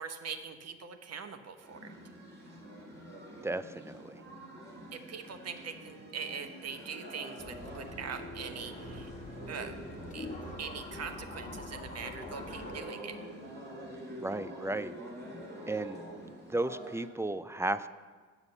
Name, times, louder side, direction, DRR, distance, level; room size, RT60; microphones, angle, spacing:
voice 1, 0.0-1.9 4.9-9.1 9.5-9.7 10.1-10.3 10.6-13.2, right 6 dB, 40° right, 8 dB, 1.1 m, -42 dB
sound 1, 1.6-17.1, right 1 dB, 25° right, 3.4 m, -46 dB
voice 2, 3.4-4.2 14.2-14.9 15.7-16.0 16.5-17.9, right 2 dB, 10° right, 13 dB, 0.3 m, -34 dB
sound 2, 7.4-12.8, left 2 dB, 20° left, 1.5 m, -44 dB
8.0 x 6.7 x 8.0 m, 1.5 s
hypercardioid pair, 65°, 37 cm